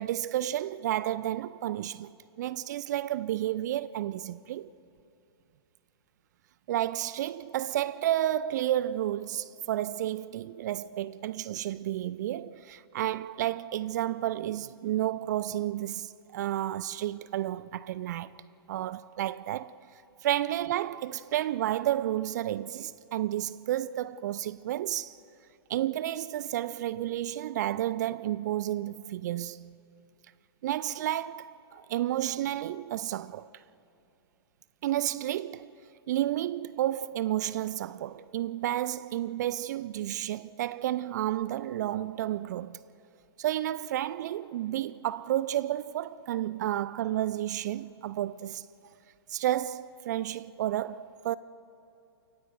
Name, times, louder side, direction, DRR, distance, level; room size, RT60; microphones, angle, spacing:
voice 1, 0.0-2.1 2.4-4.7 6.7-18.4 18.7-19.8 20.2-25.2 25.7-29.7 30.6-33.5 34.8-35.7 36.1-42.8 43.4-48.7 49.3-51.4, right 13 dB, 40° right, 0.4 m, -31 dB
29.0 x 24.0 x 4.5 m
figure-of-eight pair, 110°, 14 cm